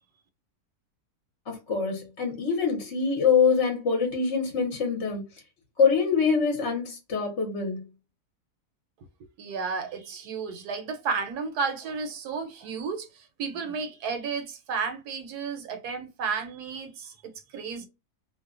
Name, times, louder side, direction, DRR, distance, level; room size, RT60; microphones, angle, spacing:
voice 1, 1.5-5.2 5.8-7.8, left 5 dB, 55° left, 0.9 m, -24 dB
voice 2, 9.4-17.1 17.5-17.9, right 5 dB, 85° right, 1.2 m, -32 dB
2.7 x 2.1 x 2.4 m
omnidirectional pair, 1.7 m